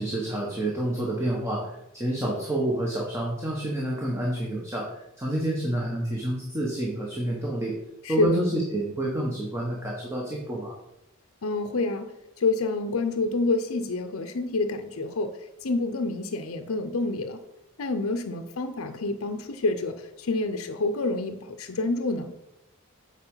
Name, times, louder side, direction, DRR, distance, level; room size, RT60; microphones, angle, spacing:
voice 1, 0.0-7.7 8.1-10.7, right 1 dB, 15° right, -3 dB, 1.4 m, -29 dB
voice 2, 8.0-8.4 11.4-17.4 17.8-22.3, left 3 dB, 85° left, 8 dB, 0.6 m, -28 dB
8.0 x 4.8 x 5.6 m, 0.86 s
head